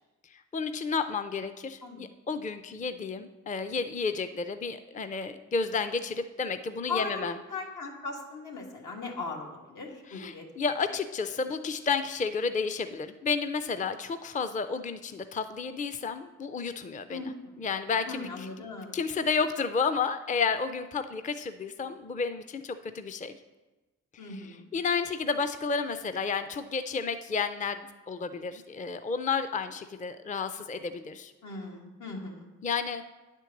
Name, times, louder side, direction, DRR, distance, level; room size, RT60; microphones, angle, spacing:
voice 1, 0.3-7.4 10.1-18.7 18.9-23.3 24.2-27.8 28.1-31.3 32.6-33.0, left 5 dB, 25° left, 10 dB, 0.4 m, -31 dB
voice 2, 6.9-10.5 17.1-17.6 18.1-18.9 24.2-24.6 31.4-32.5, left 4 dB, 80° left, 0 dB, 1.8 m, -38 dB
9.4 x 4.5 x 7.1 m, 1.2 s
cardioid pair, 75°, 30 cm